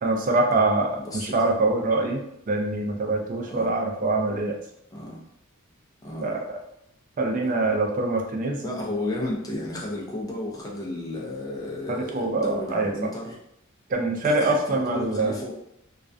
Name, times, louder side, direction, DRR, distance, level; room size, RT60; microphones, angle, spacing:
voice 1, 0.0-4.6 6.2-6.6 7.2-8.6 11.9-12.9 13.9-15.4, right 2 dB, 40° right, 2 dB, 0.4 m, -24 dB
voice 2, 0.9-1.4 3.5-3.7 4.9-5.2 6.0-6.3 8.6-13.4 14.2-15.5, left 1 dB, 15° left, -3 dB, 0.5 m, -33 dB
2.4 x 2.1 x 2.5 m, 0.78 s
head